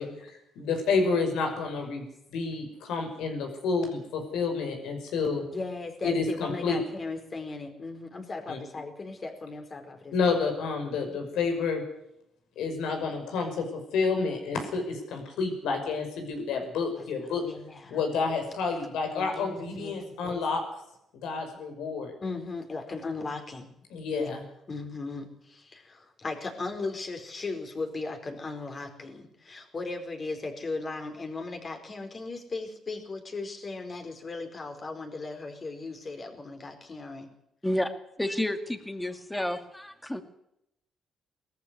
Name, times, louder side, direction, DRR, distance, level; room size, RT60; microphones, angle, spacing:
voice 1, 0.0-2.0 2.3-5.4 6.0-6.8 8.5-8.6 10.1-11.8 12.6-17.4 17.9-20.6 21.2-22.1 23.9-24.4, left 4 dB, 90° left, 5 dB, 5.8 m, -29 dB
voice 2, 1.6-2.0 5.5-10.1 17.0-18.0 19.1-20.4 22.2-23.7 24.1-24.4 24.7-37.3, left 3 dB, 35° left, 5 dB, 4.6 m, -37 dB
voice 3, 38.2-40.2, left 1 dB, 10° left, 8 dB, 2.2 m, -30 dB
19.0 x 14.0 x 9.8 m, 0.81 s
cardioid pair, 90°, 0 cm